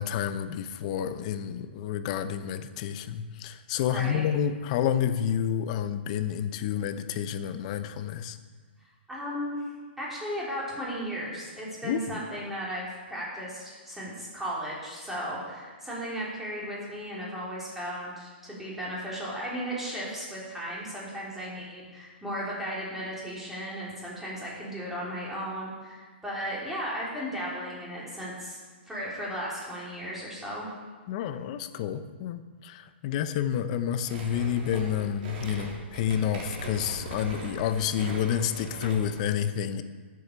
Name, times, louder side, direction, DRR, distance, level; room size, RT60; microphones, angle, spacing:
voice 1, 0.0-8.4 11.8-12.2 31.1-39.8, left 9 dB, 35° left, 10 dB, 0.8 m, -29 dB
voice 2, 3.8-4.2 9.1-9.7 10.0-28.6 28.9-30.7, equal, 5° right, -7 dB, 3.5 m, -35 dB
sound 1, 34.0-39.2, right 2 dB, 45° right, 3.6 m, -40 dB
13.0 x 7.9 x 6.7 m, 1.5 s
hypercardioid pair, 155°, 6 cm